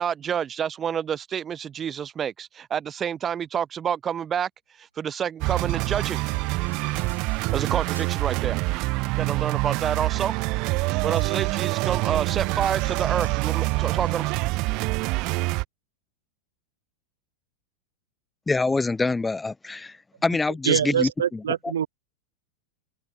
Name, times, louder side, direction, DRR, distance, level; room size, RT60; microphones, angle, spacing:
voice 1, 0.0-4.5 4.8-6.2 7.5-8.6 9.2-10.3 11.0-14.3, right 8 dB, 25° right, 1.9 m, -28 dB
sound 1, 5.4-15.6, right 25 dB, 40° right, 0.9 m, -26 dB
sound 2, 5.9-8.2 10.9-14.3, right 2 dB, 85° right, 4.9 m, -50 dB
voice 2, 18.5-19.9 20.2-21.4, left 3 dB, 10° left, 1.2 m, -25 dB
voice 3, 20.6-21.9, right 9 dB, 65° right, 0.3 m, -24 dB
open air
figure-of-eight pair, 90°, 0 cm